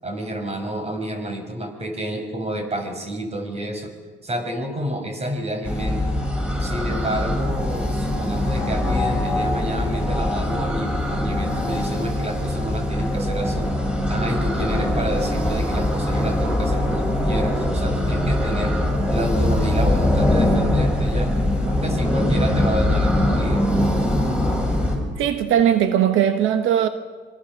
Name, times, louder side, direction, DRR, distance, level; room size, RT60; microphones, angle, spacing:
voice 1, 0.0-3.9 4.2-6.2 6.6-13.7 14.1-18.8 19.1-21.3 21.7-23.7, right 1 dB, 30° right, 5.3 m, -29 dB
sound 1, 5.6-25.0, left 1 dB, 5° right, 6.8 m, -22 dB
voice 2, 25.2-26.9, right 10 dB, 85° right, 1.1 m, -19 dB
25.5 x 23.0 x 6.5 m
cardioid pair, 90°, 20 cm